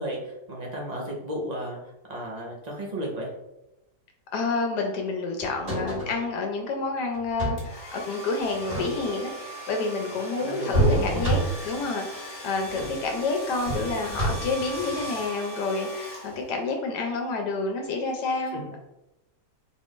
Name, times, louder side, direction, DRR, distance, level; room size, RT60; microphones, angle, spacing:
voice 1, 0.0-1.8 2.1-3.3 10.3-11.2 18.5-18.6, equal, 35° right, -2 dB, 0.7 m, -33 dB
voice 2, 4.3-18.8, left 3 dB, 80° left, 2 dB, 1.2 m, -29 dB
sound 1, 5.4-6.2 7.1-7.7 8.5-9.3 10.7-11.8 12.7-13.0 13.6-14.7 16.3-16.5, right 1 dB, 55° right, 1.8 m, -27 dB
Domestic sounds home sounds, 7.6-16.7, equal, 45° left, 1.4 m, -39 dB
4.0 x 2.5 x 3.6 m, 0.89 s
omnidirectional pair, 1.7 m